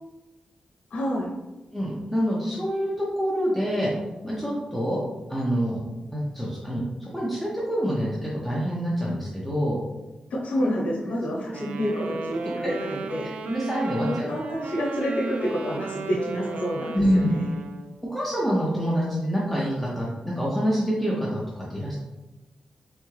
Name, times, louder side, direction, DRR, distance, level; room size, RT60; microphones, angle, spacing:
voice 1, 0.9-1.3 10.3-13.5 14.0-17.5, equal, 85° left, -3 dB, 0.8 m, -28 dB
voice 2, 1.7-3.9 4.2-5.0 5.3-5.8 6.1-9.8 13.5-14.3 16.9-17.3 18.0-22.0, equal, ahead, -6 dB, 0.6 m, -26 dB
Wind instrument woodwind instrument, 11.5-18.0, right 4 dB, 80° right, 0.3 m, -35 dB
3.6 x 3.4 x 3.1 m, 1.1 s
wide cardioid pair, 170°, 2 cm